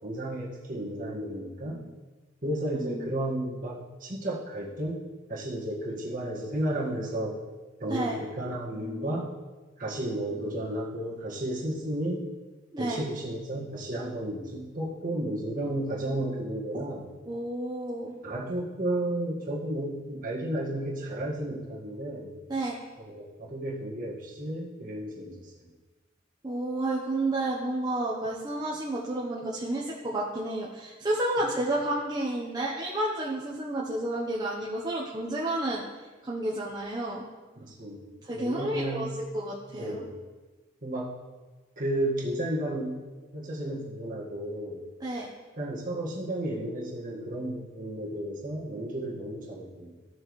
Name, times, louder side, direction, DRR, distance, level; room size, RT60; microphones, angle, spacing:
voice 1, 0.0-1.9 2.4-5.0 5.3-7.4 7.8-9.3 9.8-12.2 12.8-17.1 18.2-22.3 23.0-25.5 37.6-39.1 39.7-40.1 40.8-41.1 41.8-43.0 43.3-44.8 45.6-49.9, right 1 dB, 45° right, -4 dB, 1.7 m, -33 dB
voice 2, 17.3-18.2 22.5-22.8 26.4-35.8 36.2-37.2 38.2-40.0 45.0-45.3, right 1 dB, 20° right, -4 dB, 0.9 m, -31 dB
14.0 x 6.2 x 3.2 m, 1.3 s
head